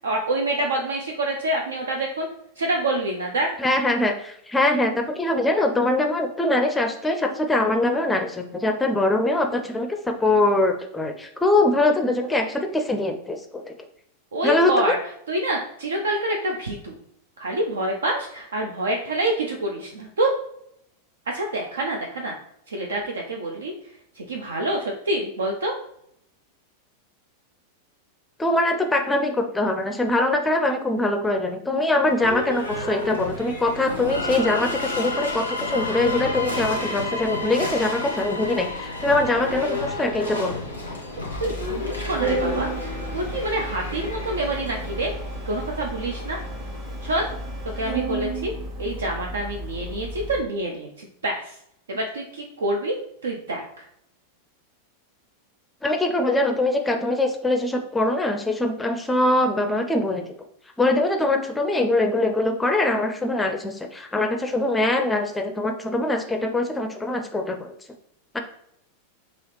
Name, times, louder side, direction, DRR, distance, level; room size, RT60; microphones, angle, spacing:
voice 1, 0.0-2.3 2.6-3.5 14.3-15.0 15.3-17.0 17.4-20.3 21.3-22.3 22.7-23.7 24.2-25.8 41.4-45.1 45.5-46.4 47.0-47.3 47.8-48.5 48.8-51.6 51.9-53.9, right 1 dB, 70° right, 1 dB, 0.5 m, -27 dB
voice 2, 3.6-13.7 14.4-14.9 28.4-40.6 55.8-60.2 60.8-67.7 68.3-68.4, left 2 dB, 10° left, 5 dB, 0.5 m, -23 dB
Livestock farm animals working animals / Bell, 32.1-47.9, left 2 dB, 90° right, 1.1 m, -33 dB
sound 1, 34.1-40.7, left 3 dB, 85° left, 0.5 m, -33 dB
Organ, 41.3-50.4, right 2 dB, 35° right, 1.2 m, -32 dB
5.5 x 2.9 x 3.1 m, 0.74 s
figure-of-eight pair, 90°, 0 cm